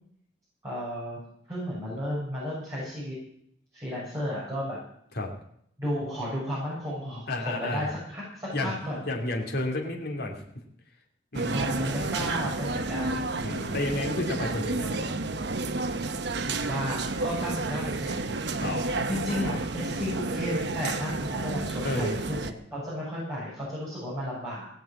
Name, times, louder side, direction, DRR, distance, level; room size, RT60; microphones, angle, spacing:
voice 1, 0.6-1.2 1.5-3.2 3.7-4.8 5.8-9.0 11.5-13.2 16.6-18.4 19.1-24.6, equal, 15° right, -8 dB, 7.2 m, -33 dB
voice 2, 7.3-7.9 8.5-10.4 11.3-11.8 13.4-15.2 18.6-19.5 21.8-22.2, left 2 dB, 60° left, 0 dB, 2.8 m, -32 dB
sound 1, 11.3-22.5, right 3 dB, 70° right, 1.0 m, -31 dB
18.0 x 7.4 x 8.6 m, 0.70 s
head